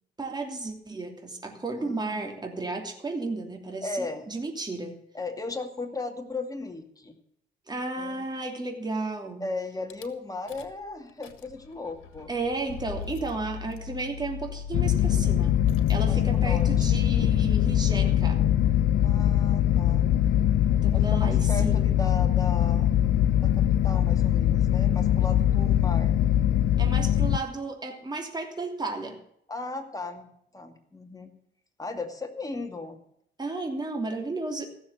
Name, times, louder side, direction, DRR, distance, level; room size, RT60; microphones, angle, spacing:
voice 1, 0.2-5.0 7.7-9.5 12.3-15.6 15.9-18.4 20.8-21.8 26.8-29.2 33.4-34.7, right 3 dB, 20° right, 2 dB, 3.0 m, -33 dB
voice 2, 1.8-2.4 3.8-4.4 5.1-7.2 8.0-8.3 9.4-12.3 16.1-16.9 19.0-20.1 20.9-23.0 23.4-26.2 29.5-31.3 31.8-33.0, left 3 dB, 15° left, 4 dB, 2.5 m, -37 dB
Rattle / Car / Engine starting, 9.9-10.1 10.5-10.8 11.1-18.8, left 6 dB, 85° left, 1.6 m, -41 dB
sound 1, 14.7-27.4, left 11 dB, 70° left, 0.8 m, -22 dB
16.0 x 7.2 x 8.1 m, 0.70 s
cardioid pair, 90°, 20 cm